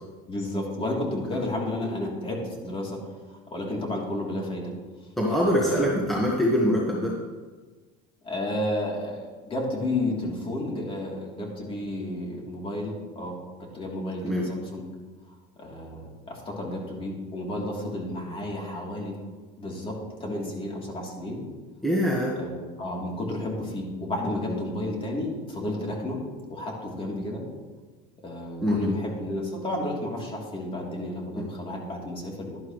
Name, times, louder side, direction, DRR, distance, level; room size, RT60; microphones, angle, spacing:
voice 1, 0.3-4.7 5.3-6.0 8.2-14.9 15.6-19.2 19.6-21.4 22.3-26.2 26.5-27.4 28.2-32.6, left 1 dB, 25° left, -2 dB, 3.3 m, -32 dB
voice 2, 5.2-7.2 14.2-14.4 21.8-22.4 28.6-28.9 31.3-31.4, equal, ahead, -4 dB, 1.7 m, -24 dB
12.0 x 11.5 x 3.2 m, 1.4 s
supercardioid pair, 120°, 20 cm